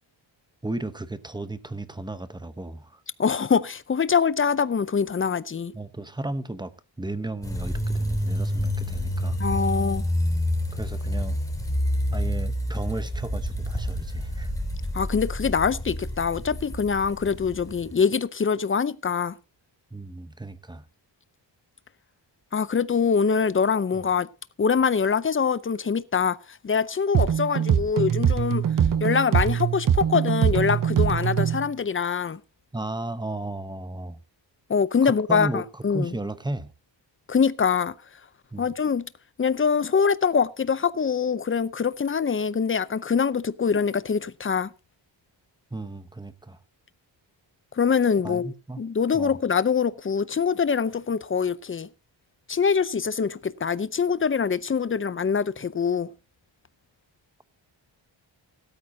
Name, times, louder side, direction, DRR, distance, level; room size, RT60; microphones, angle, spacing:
voice 1, 0.6-3.0 5.7-9.4 10.7-11.4 12.1-14.5 19.9-20.9 23.9-24.0 32.7-34.2 35.0-36.7 38.5-38.7 45.7-46.6 48.2-48.8 49.1-49.4, right 2 dB, 10° right, 0.9 m, -34 dB
voice 2, 3.2-5.7 9.4-10.0 14.9-19.3 22.5-24.3 24.6-28.7 29.0-32.4 34.7-36.1 37.3-37.9 38.6-39.1 39.4-44.7 47.8-51.9 52.5-56.1, left 6 dB, 30° left, 0.6 m, -24 dB
sound 1, 7.4-18.0, equal, 5° left, 3.2 m, -28 dB
sound 2, 27.1-31.7, right 8 dB, 45° right, 0.6 m, -23 dB
17.0 x 13.0 x 2.7 m
wide cardioid pair, 160°, 46 cm